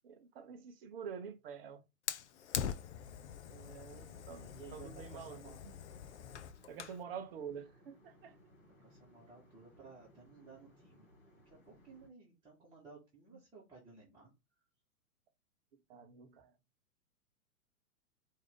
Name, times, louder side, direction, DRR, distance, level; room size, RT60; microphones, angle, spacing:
voice 1, 0.0-1.8 3.5-5.7 6.7-8.4 15.9-16.5, right 7 dB, 40° right, 0.7 m, -48 dB
Fire, 2.1-7.0, left 9 dB, 50° left, 0.5 m, -43 dB
voice 2, 3.7-5.6 8.7-11.1 11.6-14.3, right 5 dB, 10° right, 1.5 m, -57 dB
sound 1, 4.1-12.1, left 1 dB, 25° left, 2.9 m, -64 dB
4.7 x 2.7 x 3.5 m
figure-of-eight pair, 105°, 45 cm